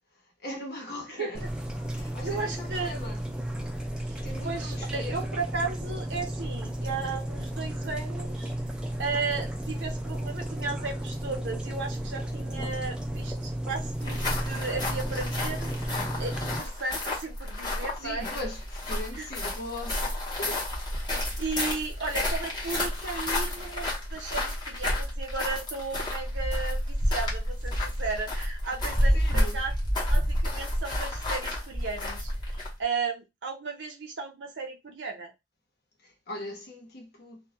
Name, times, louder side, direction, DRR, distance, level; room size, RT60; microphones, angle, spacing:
voice 1, 0.1-1.5 1.9-3.2 3.5-3.6 4.2-5.2 18.0-20.6 29.1-29.6 36.0-37.4, left 1 dB, 60° left, 0.8 m, -40 dB
sound 1, 1.3-16.6, right 1 dB, 5° right, 0.3 m, -33 dB
voice 2, 2.2-2.9 4.1-4.2 4.4-8.5 9.0-15.7 16.2-18.3 19.1-19.3 21.1-29.7 30.1-32.3 32.8-35.3, right 4 dB, 75° right, 0.7 m, -35 dB
sound 2, 13.9-32.8, left 1 dB, 25° left, 0.7 m, -30 dB
2.2 x 2.0 x 2.8 m
head